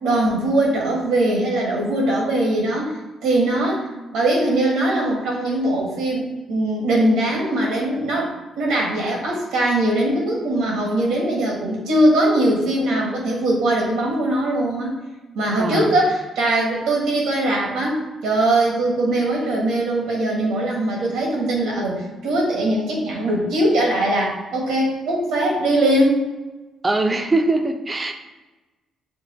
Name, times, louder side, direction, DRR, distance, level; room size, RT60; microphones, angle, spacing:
voice 1, 0.0-3.9 4.1-14.9 15.3-26.2, right 1 dB, 85° right, -2 dB, 1.4 m, -21 dB
voice 2, 15.6-15.9 26.8-28.1, right 2 dB, 25° right, 5 dB, 0.6 m, -21 dB
5.2 x 2.4 x 4.3 m, 1.1 s
cardioid pair, 90°, 0 cm